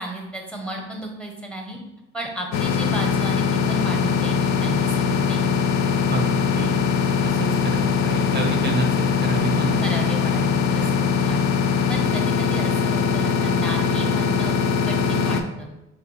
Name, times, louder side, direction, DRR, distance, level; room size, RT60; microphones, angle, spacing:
voice 1, 0.0-1.8 2.1-5.4 9.8-10.4 10.7-11.4 11.9-14.6 14.9-15.7, right 1 dB, 5° left, 1 dB, 0.8 m, -33 dB
sound 1, 2.5-15.4, left 6 dB, 65° left, 0.5 m, -21 dB
voice 2, 6.1-6.7 7.2-9.8 10.8-10.9, right 3 dB, 35° right, 3 dB, 0.6 m, -29 dB
4.8 x 2.7 x 3.2 m, 0.98 s
cardioid pair, 90°, 30 cm